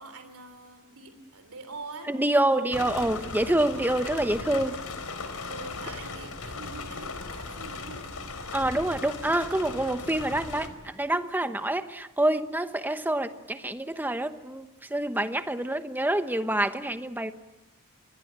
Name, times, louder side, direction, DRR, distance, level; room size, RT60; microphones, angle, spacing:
voice 1, 0.0-3.0 3.7-4.1 5.5-8.2, right 3 dB, 80° right, 8 dB, 3.4 m, -44 dB
voice 2, 2.1-4.8 8.5-17.3, right 1 dB, 10° right, 10 dB, 1.0 m, -27 dB
sound 1, 2.7-10.7, left 3 dB, 85° left, 3.8 m, -37 dB
26.5 x 21.5 x 8.7 m, 1.1 s
head